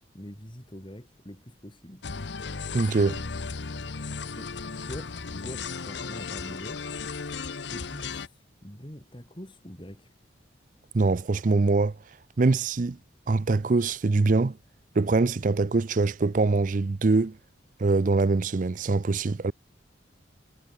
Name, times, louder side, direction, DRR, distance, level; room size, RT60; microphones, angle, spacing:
voice 1, 0.1-2.0 4.3-7.3 7.7-10.1, equal, 25° left, 4.3 m, -44 dB
sound 1, 2.0-8.3, left 4 dB, 70° left, 0.9 m, -35 dB
voice 2, 2.7-3.2 10.9-11.9 12.4-13.0 13.3-14.6 15.0-17.4 17.8-19.5, right 3 dB, 45° right, 0.5 m, -23 dB
head